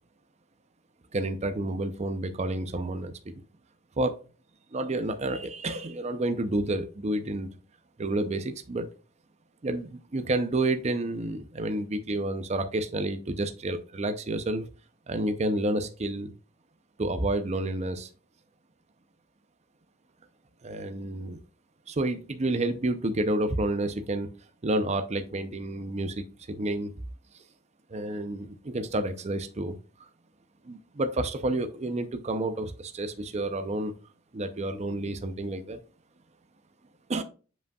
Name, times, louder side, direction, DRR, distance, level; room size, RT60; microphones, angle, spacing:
voice 1, 1.1-3.1 4.0-4.2 4.7-7.5 8.0-8.9 9.6-14.7 15.1-16.3 17.0-18.1 20.6-21.4 21.9-24.3 24.6-26.9 27.9-30.1 30.7-33.9 34.3-35.8 37.1-37.2, right 2 dB, 35° right, 8 dB, 0.6 m, -30 dB
7.5 x 5.3 x 2.3 m, 0.35 s
head